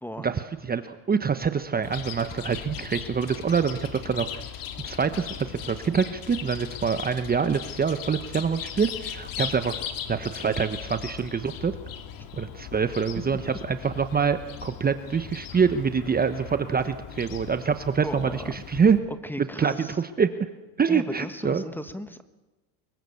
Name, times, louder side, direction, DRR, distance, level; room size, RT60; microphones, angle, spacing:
voice 1, 0.2-4.4 4.8-9.8 10.1-11.7 12.4-19.0 19.4-20.3 20.8-21.6, right 6 dB, 20° right, 10 dB, 1.1 m, -25 dB
Chirp tweet, 1.8-19.0, left 9 dB, 50° left, 2.7 m, -38 dB
voice 2, 18.0-18.5 19.2-20.0 20.9-22.2, left 1 dB, 5° left, 11 dB, 1.5 m, -36 dB
24.5 x 22.5 x 7.1 m, 1.1 s
supercardioid pair, 100°, 42 cm